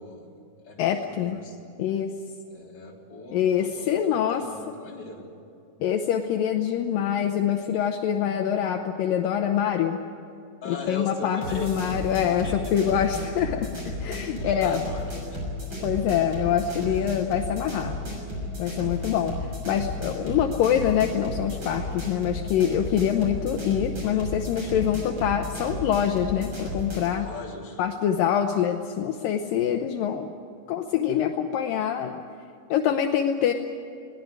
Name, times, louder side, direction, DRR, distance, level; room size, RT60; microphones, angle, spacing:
voice 1, 0.0-1.7 2.5-5.3 10.6-11.9 12.4-12.7 14.4-15.4 16.8-17.2 27.2-27.8, left 2 dB, 25° left, -2 dB, 3.3 m, -40 dB
voice 2, 0.8-1.4 1.8-2.1 3.3-4.4 5.8-10.0 10.7-13.7 14.0-14.8 15.8-18.0 18.6-19.3 19.7-27.3 27.8-30.3 30.7-32.2 32.7-33.5, left 9 dB, 75° left, 4 dB, 2.0 m, -25 dB
sound 1, 11.4-27.1, left 1 dB, 25° right, 6.7 m, -33 dB
21.5 x 18.0 x 9.4 m, 2.5 s
omnidirectional pair, 5.1 m